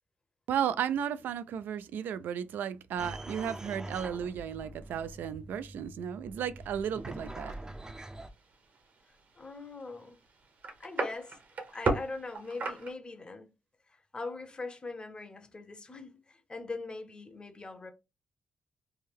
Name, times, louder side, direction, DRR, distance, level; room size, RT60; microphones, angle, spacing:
voice 1, 0.5-7.6, right 8 dB, 85° right, 0.3 m, -34 dB
sound 1, 3.0-8.3, right 1 dB, 20° right, 0.5 m, -44 dB
sound 2, 6.6-12.9, right 3 dB, 60° right, 0.9 m, -38 dB
voice 2, 9.4-10.2 10.8-11.4 11.7-13.5 13.9-17.9, left 3 dB, 30° left, 0.8 m, -41 dB
3.3 x 2.1 x 3.5 m
cardioid pair, 80°, 3 cm